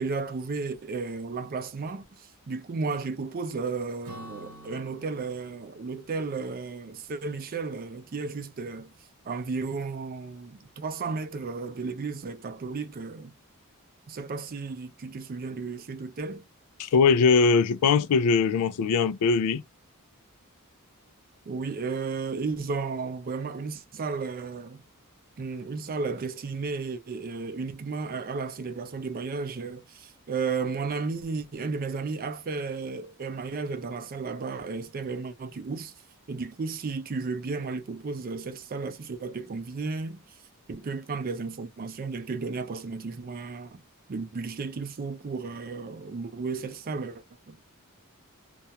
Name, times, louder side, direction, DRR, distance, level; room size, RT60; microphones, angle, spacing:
voice 1, 0.0-8.9 9.2-13.3 14.1-16.4 21.5-24.8 25.4-35.9 36.3-40.2 40.7-43.8 44.1-47.6, right 4 dB, 40° right, 0.4 m, -33 dB
Acoustic guitar / Strum, 4.0-7.7, right 1 dB, 80° right, 1.1 m, -49 dB
voice 2, 16.8-19.6, left 5 dB, 85° left, 0.4 m, -21 dB
2.4 x 2.2 x 2.7 m
head